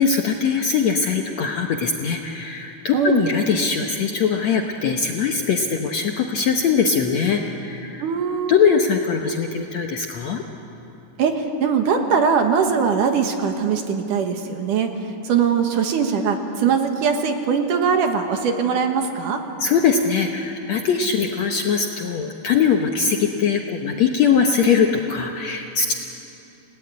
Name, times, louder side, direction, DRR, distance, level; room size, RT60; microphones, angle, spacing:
voice 1, 0.0-8.0 8.5-10.4 19.6-25.9, left 6 dB, 65° left, 3 dB, 1.8 m, -21 dB
voice 2, 2.9-3.3 8.0-8.5 11.2-14.9 15.2-19.4, right 6 dB, 65° right, 5 dB, 2.7 m, -21 dB
29.5 x 18.5 x 9.5 m, 3.0 s
omnidirectional pair, 4.3 m